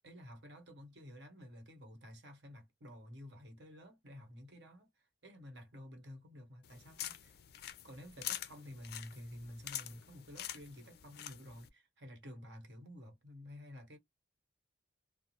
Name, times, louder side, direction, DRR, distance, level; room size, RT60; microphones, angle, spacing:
voice 1, 0.0-7.4 7.8-14.0, left 1 dB, 70° right, 1.2 m, -52 dB
sound 1, 6.6-11.7, left 12 dB, 55° left, 0.3 m, -46 dB
2.4 x 2.0 x 2.8 m
head